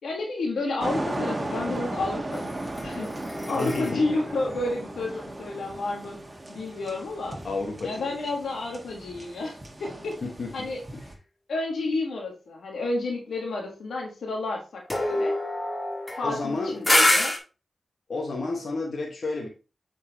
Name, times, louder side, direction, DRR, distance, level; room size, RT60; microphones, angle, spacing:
voice 1, 0.0-2.5 2.8-3.1 3.5-6.2 6.5-7.4 7.8-10.2 10.5-10.8 11.5-15.4 16.2-17.3, left 2 dB, 85° left, 0 dB, 1.6 m, -31 dB
sound 1, 0.8-11.2, right 1 dB, 35° right, 1.4 m, -36 dB
sound 2, 2.3-5.8 14.9-17.4, left 1 dB, 30° left, 1.7 m, -27 dB
voice 2, 3.6-4.0 7.4-8.1 10.2-11.1 16.2-16.8 18.1-19.5, left 3 dB, 70° left, 0 dB, 1.4 m, -31 dB
7.2 x 4.6 x 2.9 m, 0.32 s
cardioid pair, 40°, 0 cm